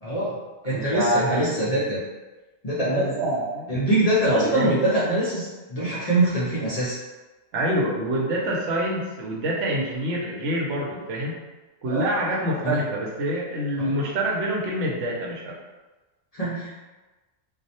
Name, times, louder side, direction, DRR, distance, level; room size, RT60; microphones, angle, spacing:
voice 1, 0.0-0.3 0.6-2.0 2.6-3.1 3.7-6.9 11.9-12.1 12.6-12.8 13.8-14.0 16.3-16.7, right 1 dB, 50° left, -9 dB, 0.4 m, -24 dB
voice 2, 0.7-1.5 2.8-3.8 4.3-4.8 7.5-11.3 11.8-15.5, right 1 dB, 85° right, -3 dB, 0.9 m, -26 dB
2.3 x 2.0 x 2.7 m, 1.2 s
omnidirectional pair, 1.2 m